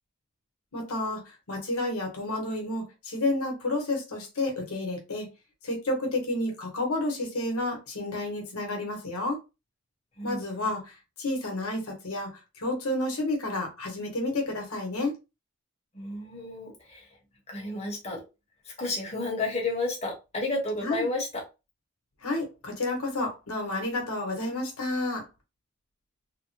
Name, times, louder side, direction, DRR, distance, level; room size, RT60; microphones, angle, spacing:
voice 1, 0.7-5.3 5.6-9.4 10.2-15.1 20.8-21.1 22.2-25.3, left 2 dB, 85° left, 1.2 m, -30 dB
voice 2, 10.2-10.7 15.9-17.0 17.5-18.2 18.8-21.4, left 2 dB, 30° left, 1.2 m, -32 dB
3.4 x 2.1 x 3.0 m
head